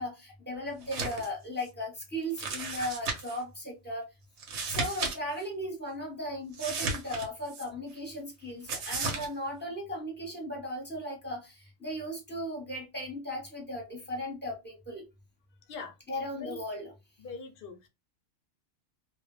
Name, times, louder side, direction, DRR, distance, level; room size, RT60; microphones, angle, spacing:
voice 1, 0.0-4.1 4.7-15.1 16.1-16.9, equal, 10° left, 0.8 m, -37 dB
sound 1, 0.8-1.3 1.6-1.7 2.4-3.4 4.4-5.2 5.4-5.5 6.5-7.6 8.7-9.3, right 4 dB, 75° right, 0.9 m, -34 dB
voice 2, 16.4-16.8 17.2-17.9, left 5 dB, 60° left, 0.6 m, -42 dB
2.2 x 2.1 x 3.0 m
omnidirectional pair, 1.2 m